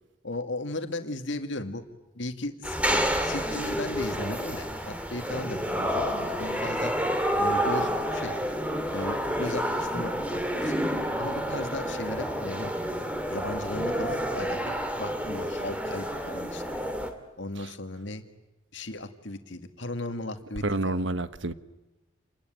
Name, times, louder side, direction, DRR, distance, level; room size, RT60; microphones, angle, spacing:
voice 1, 0.2-1.8 2.1-6.9 7.4-8.4 8.9-10.7 11.2-12.7 13.3-16.8 17.4-18.2 18.7-21.0, left 2 dB, 65° left, 8 dB, 2.1 m, -36 dB
sound 1, 2.6-17.1, equal, 5° right, 2.4 m, -29 dB
voice 2, 20.6-21.5, right 2 dB, 65° right, 13 dB, 1.2 m, -28 dB
29.0 x 21.0 x 9.3 m, 1.1 s
head